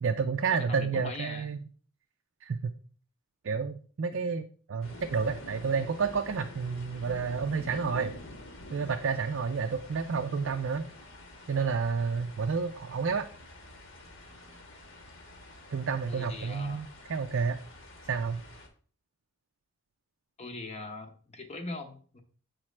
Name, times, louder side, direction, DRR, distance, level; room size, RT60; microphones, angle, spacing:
voice 1, 0.0-1.6 2.4-2.7 3.4-8.2 8.7-10.8 11.5-13.3 15.7-17.6 18.1-18.4, right 5 dB, 55° right, 6 dB, 0.4 m, -30 dB
voice 2, 0.5-1.5 16.1-16.9 20.4-22.2, left 2 dB, 30° left, 4 dB, 0.8 m, -41 dB
sound 1, 4.8-18.7, left 1 dB, 55° left, 1.2 m, -48 dB
7.2 x 5.0 x 3.2 m, 0.44 s
head